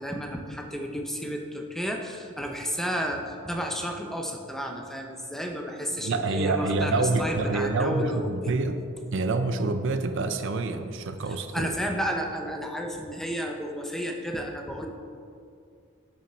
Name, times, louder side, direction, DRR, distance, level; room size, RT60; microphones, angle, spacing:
voice 1, 0.0-8.5 11.5-14.9, equal, ahead, 2 dB, 0.7 m, -32 dB
voice 2, 6.0-8.8 9.1-11.7, right 3 dB, 60° right, 8 dB, 0.5 m, -27 dB
7.0 x 6.3 x 6.2 m, 2.4 s
head